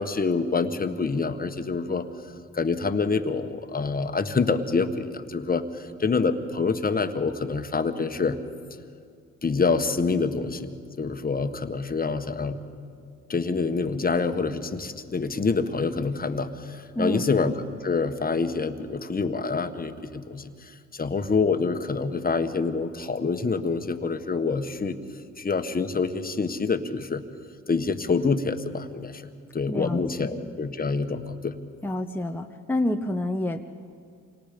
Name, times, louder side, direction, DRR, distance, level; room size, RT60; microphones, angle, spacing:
voice 1, 0.0-2.1 2.5-8.4 9.4-12.6 13.3-17.5 17.8-25.0 25.4-27.2 27.7-31.6, left 4 dB, 30° left, 8 dB, 1.4 m, -26 dB
voice 2, 16.9-17.3 29.7-30.4 31.8-33.6, left 1 dB, 5° left, 3 dB, 0.9 m, -28 dB
28.5 x 25.0 x 5.2 m, 2.3 s
cardioid pair, 90°, 30 cm